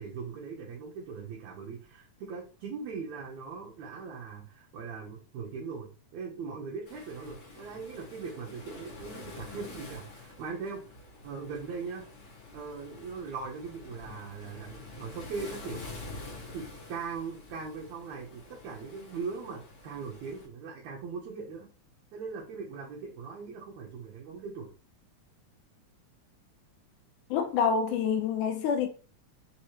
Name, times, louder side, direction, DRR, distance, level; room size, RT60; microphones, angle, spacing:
voice 1, 0.0-10.8 11.2-12.1 12.5-15.8 16.5-21.7 22.1-24.7, right 5 dB, 75° right, 2.2 m, -40 dB
Waves surf, 6.9-20.5, left 3 dB, 55° left, 2.2 m, -47 dB
voice 2, 27.3-28.9, left 6 dB, 85° left, 2.2 m, -27 dB
5.5 x 3.1 x 2.9 m
omnidirectional pair, 3.5 m